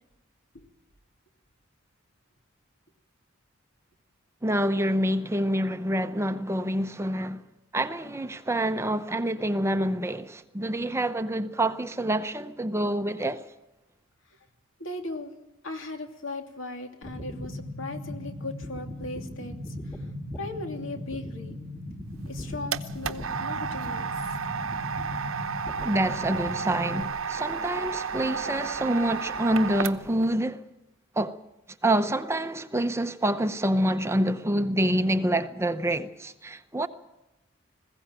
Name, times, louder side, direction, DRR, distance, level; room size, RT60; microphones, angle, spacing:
voice 1, 4.4-7.4 7.7-13.4 25.8-30.6 31.2-31.4 31.8-36.9, right 1 dB, 15° right, 0.7 m, -27 dB
voice 2, 14.8-15.3 15.6-19.5 19.8-20.0 20.4-21.6 22.3-24.1, left 2 dB, 70° left, 2.8 m, -37 dB
sound 1, 17.0-27.0, left 1 dB, 10° left, 2.1 m, -38 dB
sound 2, 22.2-30.3, right 6 dB, 75° right, 0.9 m, -32 dB
21.0 x 16.0 x 9.0 m
head